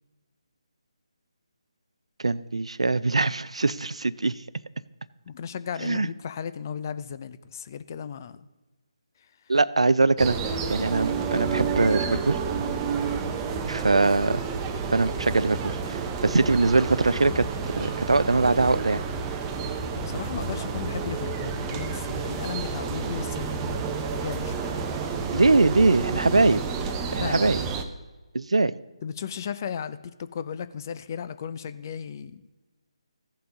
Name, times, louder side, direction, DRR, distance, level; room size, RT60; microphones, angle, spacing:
voice 1, 2.2-4.4 5.8-6.1 9.5-12.4 13.7-14.4 14.9-17.5 17.8-19.0 25.3-26.6 27.1-27.6 28.3-28.8, right 3 dB, 80° right, 18 dB, 0.4 m, -22 dB
voice 2, 5.3-8.5 19.9-24.7 27.1-27.4 29.0-32.4, left 7 dB, 35° left, 13 dB, 0.5 m, -35 dB
sound 1, 10.2-27.8, right 5 dB, 15° right, 0.6 m, -30 dB
15.5 x 5.7 x 3.7 m, 1.2 s
figure-of-eight pair, 150°, 3 cm